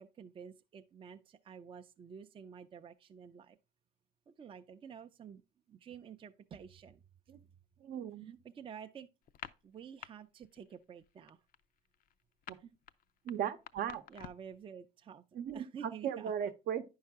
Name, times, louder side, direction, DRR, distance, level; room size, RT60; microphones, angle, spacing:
voice 1, 0.0-3.6 4.3-5.4 5.7-7.0 8.5-9.1 9.6-11.4 12.6-12.7 14.1-15.3 15.5-16.5, right 7 dB, 30° right, 0.5 m, -50 dB
voice 2, 7.8-8.4 12.5-12.6 13.2-14.0 15.3-16.8, right 9 dB, 65° right, 0.7 m, -37 dB
sound 1, 9.2-10.1 10.4-10.7 11.0-14.6, left 11 dB, 55° left, 0.5 m, -49 dB
9.6 x 5.6 x 3.5 m
cardioid pair, 110°, 17 cm